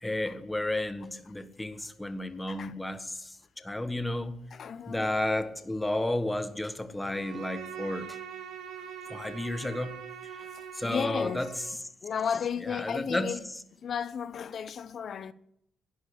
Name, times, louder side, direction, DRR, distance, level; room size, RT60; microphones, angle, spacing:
voice 1, 0.0-4.5 4.9-8.2 9.1-10.5 10.7-11.6 12.6-13.3, left 1 dB, 10° left, 1.3 m, -32 dB
voice 2, 4.5-5.1 10.5-11.4 12.0-13.4 13.8-15.3, left 7 dB, 55° left, 0.9 m, -34 dB
Bowed string instrument, 7.0-11.8, right 8 dB, 80° right, 2.1 m, -43 dB
12.5 x 9.8 x 8.4 m
cardioid pair, 90°, 0 cm